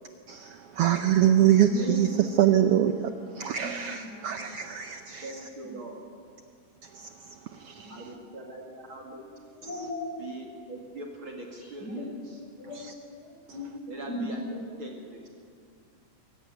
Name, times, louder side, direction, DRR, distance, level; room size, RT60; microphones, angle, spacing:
voice 1, 0.3-2.1 2.4-3.0 3.3-5.3 6.9-7.1 7.6-8.0, right 10 dB, 75° right, 8 dB, 1.3 m, -24 dB
voice 2, 1.7-2.2 2.7-2.8 3.1-4.6 5.6-5.7 7.7-8.6 9.1-10.4 11.6-14.6, left 1 dB, 30° left, -1 dB, 5.8 m, -39 dB
voice 3, 5.2-6.0 7.9-9.3 10.2-12.1 13.9-14.4 14.8-15.4, right 2 dB, 40° right, 0 dB, 3.0 m, -42 dB
23.5 x 16.5 x 9.7 m, 2.2 s
omnidirectional pair, 3.6 m